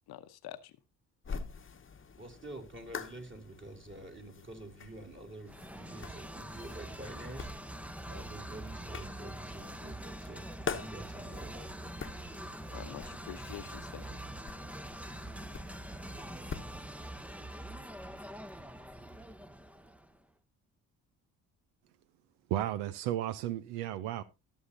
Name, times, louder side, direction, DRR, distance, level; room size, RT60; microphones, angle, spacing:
voice 1, 0.1-0.8 12.7-14.0, left 13 dB, 65° left, 0.9 m, -46 dB
sound 1, 1.2-16.8, left 5 dB, 30° left, 1.1 m, -46 dB
voice 2, 2.2-7.5 8.1-11.7, right 1 dB, 30° right, 3.2 m, -48 dB
sound 2, 5.5-20.2, right 1 dB, 5° right, 0.7 m, -44 dB
voice 3, 22.5-24.2, right 12 dB, 80° right, 0.7 m, -34 dB
20.5 x 7.2 x 2.6 m
hypercardioid pair, 50°, 41 cm